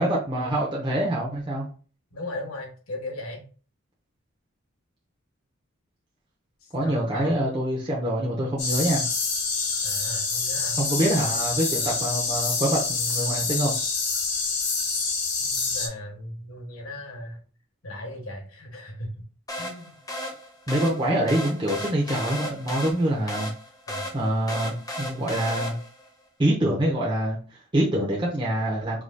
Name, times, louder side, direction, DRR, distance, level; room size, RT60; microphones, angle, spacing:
voice 1, 0.0-1.7 6.7-9.1 10.8-13.7 20.7-23.5 24.1-25.8 26.4-29.0, right 1 dB, 20° right, -5 dB, 0.8 m, -25 dB
voice 2, 2.1-3.5 6.6-7.4 9.8-10.8 15.4-17.4 17.8-19.1 19.6-19.9 23.9-24.2, left 1 dB, 80° left, 1 dB, 1.4 m, -37 dB
sound 1, 8.6-15.9, left 4 dB, 50° left, 1.2 m, -27 dB
sound 2, 19.5-26.1, left 1 dB, 15° left, 0.8 m, -35 dB
4.8 x 3.9 x 2.3 m, 0.39 s
head